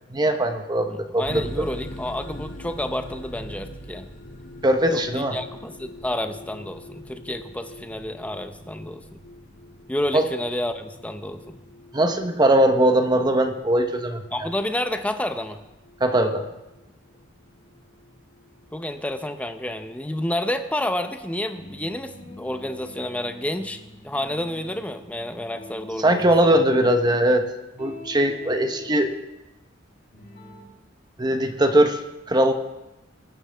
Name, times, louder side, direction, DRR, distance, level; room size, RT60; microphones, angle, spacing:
voice 1, 0.1-1.7 4.6-5.4 10.1-10.3 11.9-14.2 16.0-16.4 26.0-27.4 27.8-29.1 31.2-32.0 32.3-32.5, right 1 dB, 20° right, 6 dB, 1.0 m, -20 dB
voice 2, 0.9-4.1 4.9-9.0 9.9-11.6 14.3-15.6 18.7-23.8 24.0-26.6, left 1 dB, 5° left, 8 dB, 0.7 m, -30 dB
sound 1, 1.2-19.8, left 1 dB, 80° left, 2.6 m, -43 dB
sound 2, 21.5-27.4 27.8-28.9 30.1-30.6, left 1 dB, 55° left, 3.0 m, -45 dB
21.0 x 9.4 x 3.5 m, 0.99 s
head